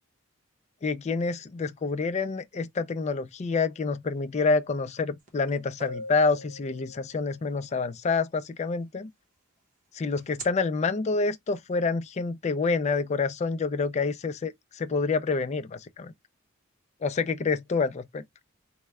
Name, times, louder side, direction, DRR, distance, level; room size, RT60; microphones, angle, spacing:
voice 1, 0.8-9.1 9.9-16.1 17.0-18.2, left 4 dB, 35° left, 0.3 m, -27 dB
sound 1, 5.3-5.4 5.8-7.5 10.2-10.4, equal, 40° right, 1.0 m, -40 dB
3.3 x 2.0 x 3.4 m
head